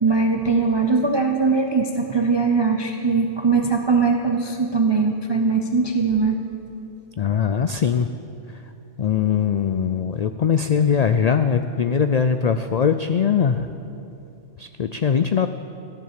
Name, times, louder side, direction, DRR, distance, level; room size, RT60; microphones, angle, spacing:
voice 1, 0.0-6.4, right 4 dB, 30° right, 3 dB, 0.6 m, -20 dB
voice 2, 7.2-8.1 9.0-13.7 14.6-15.5, left 7 dB, 80° left, 9 dB, 0.3 m, -21 dB
14.5 x 10.5 x 7.5 m, 2.8 s
omnidirectional pair, 1.3 m